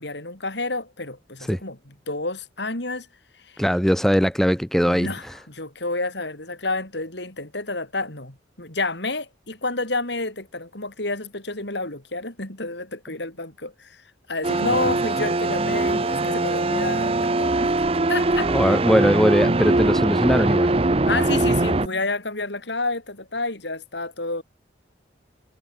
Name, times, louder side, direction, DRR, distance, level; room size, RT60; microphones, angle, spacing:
voice 1, 0.0-3.1 3.4-3.6 4.8-14.0 14.3-17.7 18.1-18.5 21.0-24.4, left 2 dB, 65° left, 5.3 m, -29 dB
voice 2, 3.6-5.1 18.5-20.7, equal, ahead, 0.8 m, -20 dB
sound 1, 14.4-21.9, right 2 dB, 30° right, 0.8 m, -21 dB
head